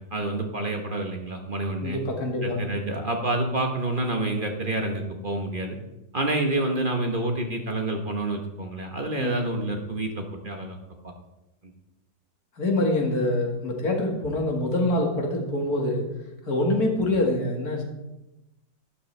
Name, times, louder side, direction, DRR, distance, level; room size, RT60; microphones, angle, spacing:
voice 1, 0.0-2.0 2.4-5.8 6.1-10.8 11.0-11.1 11.6-11.7, right 2 dB, 35° right, 3 dB, 1.0 m, -28 dB
voice 2, 1.8-2.7 9.2-9.3 12.6-16.1 16.5-17.8, left 1 dB, 55° left, 1 dB, 2.2 m, -25 dB
12.5 x 10.0 x 3.3 m, 0.95 s
omnidirectional pair, 2.0 m